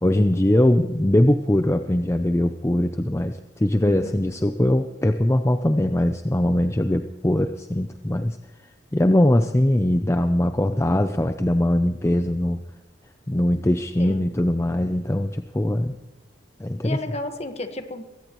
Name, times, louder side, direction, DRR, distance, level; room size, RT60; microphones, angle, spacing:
voice 1, 0.0-8.4 8.9-12.6 13.3-16.0 16.6-17.0, left 1 dB, 15° left, 8 dB, 0.5 m, -21 dB
voice 2, 3.9-4.2 14.0-14.2 16.8-18.0, left 2 dB, 35° left, 7 dB, 1.5 m, -32 dB
22.0 x 17.0 x 3.1 m, 1.1 s
head